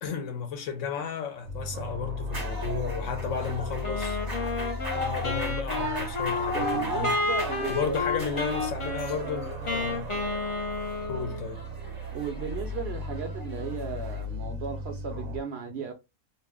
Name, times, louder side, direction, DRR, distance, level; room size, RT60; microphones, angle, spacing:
voice 1, 0.0-4.2 4.9-7.2 7.7-10.1 11.1-11.6, left 6 dB, 70° left, 0.9 m, -33 dB
sound 1, 1.5-15.4, equal, 85° right, 1.0 m, -37 dB
sound 2, 2.3-14.2, equal, 25° right, 0.5 m, -38 dB
Wind instrument woodwind instrument, 3.8-11.5, left 3 dB, 50° left, 0.3 m, -31 dB
voice 2, 6.5-8.4 12.1-15.9, right 6 dB, 60° right, 0.7 m, -35 dB
2.5 x 2.0 x 3.4 m
omnidirectional pair, 1.4 m